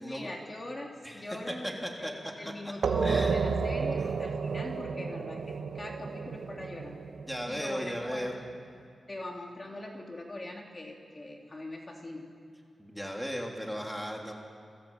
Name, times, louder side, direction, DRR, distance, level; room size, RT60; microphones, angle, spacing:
voice 1, 0.0-6.9 7.5-8.3 9.1-12.3, left 1 dB, 25° left, 0 dB, 3.2 m, -41 dB
voice 2, 1.0-2.1 2.4-2.7 3.0-3.3 7.3-8.4 12.8-14.3, equal, ahead, 0 dB, 3.4 m, -36 dB
sound 1, 2.8-8.2, right 5 dB, 80° right, 1.7 m, -32 dB
29.0 x 22.0 x 9.0 m, 2.5 s
wide cardioid pair, 140°, 0 cm